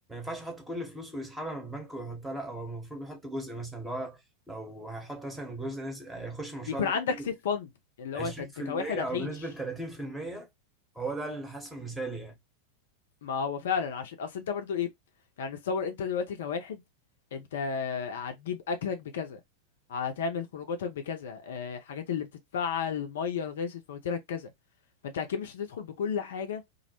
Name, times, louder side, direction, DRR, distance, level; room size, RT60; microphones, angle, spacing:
voice 1, 0.1-4.2 4.5-7.3 8.1-10.5 10.9-12.4, right 2 dB, 5° right, 0.8 m, -37 dB
voice 2, 6.7-7.7 8.0-9.4 13.2-14.9 15.4-16.8 17.3-19.4 19.9-24.5 25.0-26.6, left 6 dB, 60° left, 0.4 m, -32 dB
2.5 x 2.0 x 2.7 m
figure-of-eight pair, 90°, 0 cm